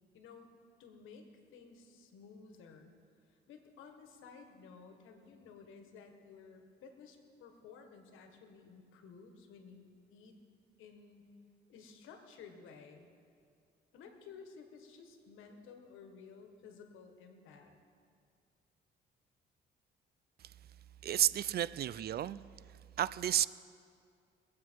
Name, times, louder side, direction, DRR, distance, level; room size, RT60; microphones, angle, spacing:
voice 1, 0.1-0.5 0.8-2.9 3.3-10.4 10.8-11.3 11.7-13.1 13.9-17.7, left 5 dB, 90° left, 5 dB, 1.5 m, -55 dB
voice 2, 21.0-22.4 23.0-23.5, right 11 dB, 55° right, 18 dB, 0.4 m, -31 dB
22.0 x 8.5 x 4.6 m, 2.3 s
cardioid pair, 90°, 20 cm